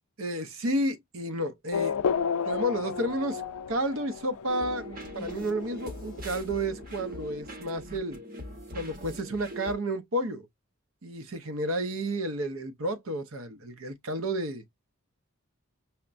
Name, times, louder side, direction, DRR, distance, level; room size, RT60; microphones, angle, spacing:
voice 1, 0.2-2.0 2.4-3.4 3.7-8.2 8.7-10.5 11.0-14.6, right 1 dB, 80° right, 0.7 m, -31 dB
Race car auto racing / Accelerating revving vroom, 1.7-7.8, left 6 dB, 90° left, 0.4 m, -33 dB
sound 1, 4.5-9.7, equal, 45° right, 0.8 m, -42 dB
5.7 x 2.1 x 2.5 m
head